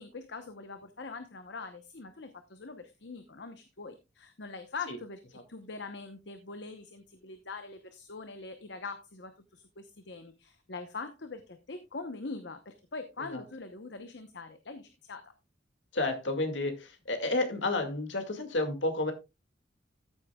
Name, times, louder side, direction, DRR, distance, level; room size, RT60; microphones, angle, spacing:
voice 1, 0.0-5.2 5.5-15.3, left 4 dB, 65° left, 9 dB, 0.9 m, -43 dB
voice 2, 15.9-19.1, left 2 dB, 85° left, 6 dB, 2.1 m, -31 dB
14.0 x 8.3 x 2.3 m, 0.26 s
head